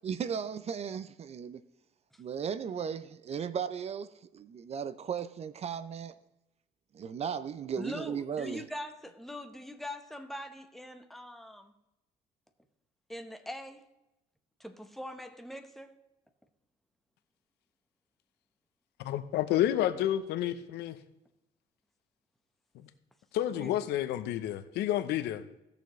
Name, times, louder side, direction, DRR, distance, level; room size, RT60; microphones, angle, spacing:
voice 1, 0.0-1.6 2.2-6.1 6.9-8.6, right 7 dB, 40° right, 0.5 m, -36 dB
voice 2, 7.8-11.7 13.1-13.9 14.6-16.0 23.6-23.7, left 1 dB, ahead, 1.0 m, -42 dB
voice 3, 19.0-21.0 22.8-22.9 23.3-25.4, left 12 dB, 80° left, 0.8 m, -30 dB
17.5 x 6.8 x 3.2 m
cardioid pair, 110°, 17 cm